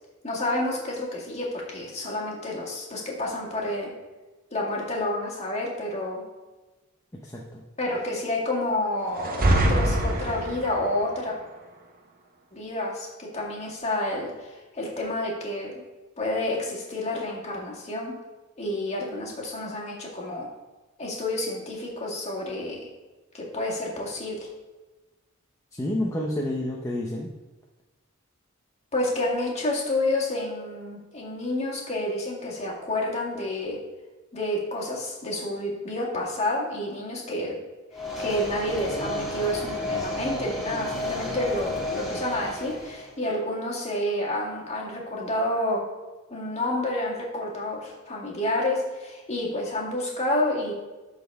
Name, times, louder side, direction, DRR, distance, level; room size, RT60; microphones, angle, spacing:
voice 1, 0.2-3.9 4.5-6.2 7.8-11.4 12.5-15.8 16.2-18.1 18.6-20.5 21.0-22.9 23.3-24.5 28.9-33.8 34.3-37.6 37.9-45.8 46.3-50.7, left 1 dB, 30° left, -3 dB, 1.8 m, -29 dB
voice 2, 7.1-7.6 25.7-27.3, left 1 dB, 15° left, -2 dB, 0.7 m, -29 dB
sound 1, 9.2-10.8, right 1 dB, 45° right, 0.8 m, -23 dB
sound 2, 37.9-43.1, left 1 dB, ahead, 1.9 m, -32 dB
12.0 x 4.1 x 3.5 m, 1.2 s
head